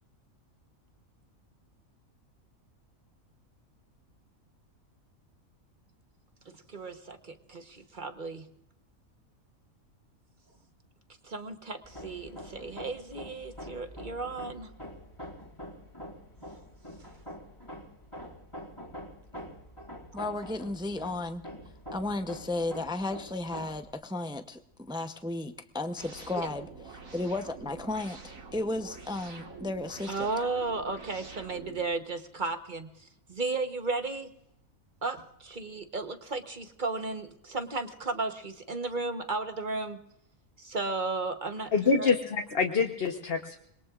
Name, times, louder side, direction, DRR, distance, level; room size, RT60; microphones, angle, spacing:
voice 1, 6.7-8.5 11.2-14.7 26.4-26.5 30.1-34.3 35.0-40.0 40.6-42.2, right 3 dB, 35° right, 7 dB, 1.1 m, -34 dB
Hammer, 11.8-23.9, equal, 20° left, 2.7 m, -45 dB
voice 2, 20.1-21.4 21.9-24.6 24.9-26.7 27.1-30.3, left 2 dB, 5° right, 7 dB, 0.5 m, -34 dB
sound 1, 26.0-31.8, right 4 dB, 70° right, 2.2 m, -46 dB
voice 3, 41.7-43.5, left 5 dB, 45° left, 3 dB, 1.2 m, -26 dB
27.0 x 21.5 x 2.5 m, 0.76 s
omnidirectional pair, 1.4 m